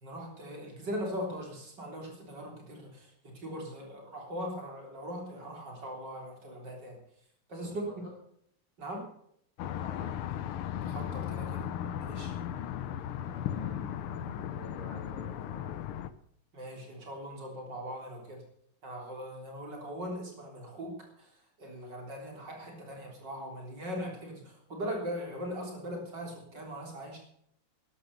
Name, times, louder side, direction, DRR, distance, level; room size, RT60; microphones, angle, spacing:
voice 1, 0.0-7.0 7.5-8.1 8.8-9.1 10.7-11.7 12.1-12.3 16.5-18.4 18.8-27.2, equal, 50° right, 1 dB, 4.2 m, -40 dB
sound 1, 9.6-16.1, left 10 dB, 80° left, 1.7 m, -36 dB
voice 2, 9.6-10.1 13.1-15.7, left 1 dB, 5° left, -8 dB, 6.6 m, -48 dB
13.5 x 11.0 x 6.8 m, 0.68 s
omnidirectional pair, 2.4 m